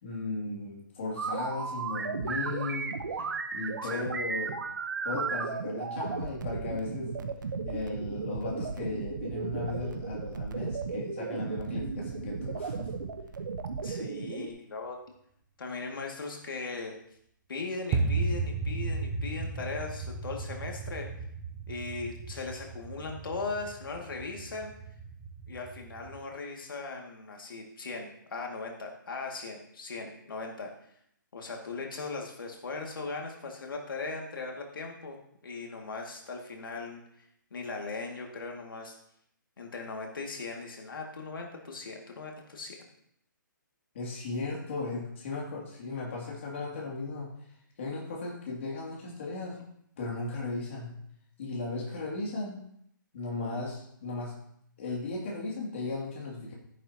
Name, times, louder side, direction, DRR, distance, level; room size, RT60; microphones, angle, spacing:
voice 1, 0.0-2.9 3.5-4.5 5.0-7.2 7.7-12.9 43.9-47.3 47.8-49.6 50.0-50.9 51.4-52.6 53.1-54.3 54.8-56.5, left 3 dB, 35° left, -3 dB, 2.7 m, -36 dB
sound 1, 1.2-14.5, right 5 dB, 65° right, 1.1 m, -35 dB
voice 2, 13.8-15.0 15.6-17.0 17.5-21.1 21.7-24.7 25.5-30.7 31.3-35.2 35.4-37.0 37.5-39.0 39.6-42.8, left 3 dB, 85° left, 1 dB, 2.2 m, -38 dB
sound 2, 17.9-26.2, right 3 dB, 10° right, 0.3 m, -35 dB
12.0 x 11.0 x 2.9 m, 0.72 s
hypercardioid pair, 175°, 11 cm